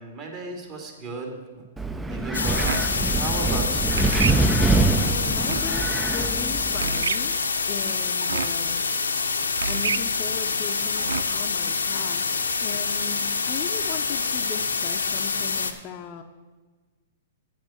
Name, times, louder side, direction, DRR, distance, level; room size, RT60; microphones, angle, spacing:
voice 1, 0.0-1.6 2.1-4.1, right 3 dB, 35° right, 1 dB, 2.4 m, -35 dB
Wind, 1.8-7.0, right 3 dB, 5° right, 0.5 m, -24 dB
sound 1, 2.3-15.7, left 4 dB, 90° left, 0.8 m, -26 dB
sound 2, 2.5-11.5, right 5 dB, 80° right, 0.3 m, -32 dB
voice 2, 4.7-7.4 7.7-8.8 9.7-16.2, left 7 dB, 35° left, 6 dB, 0.6 m, -37 dB
7.7 x 7.5 x 6.2 m, 1.3 s
hypercardioid pair, 120°, 0 cm